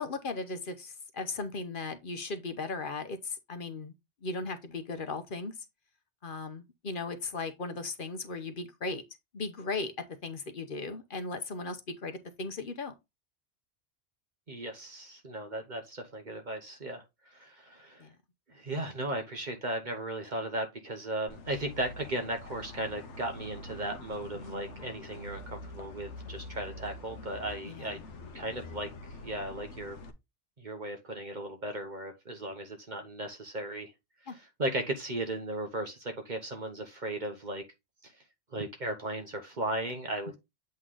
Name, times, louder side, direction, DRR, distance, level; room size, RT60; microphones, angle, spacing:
voice 1, 0.0-3.9 4.2-5.5 6.2-9.0 9.3-9.9 10.2-12.9 18.0-18.1 27.6-28.0 34.3-34.4, left 3 dB, 50° left, 0.9 m, -37 dB
voice 2, 14.5-18.1 18.5-28.0 28.3-28.9 29.2-30.0 30.6-33.9 34.2-37.6 38.0-38.1 38.5-40.3, right 1 dB, 40° right, 1.1 m, -36 dB
sound 1, 21.3-30.1, left 2 dB, 80° left, 1.1 m, -45 dB
8.0 x 3.2 x 3.8 m
omnidirectional pair, 1.2 m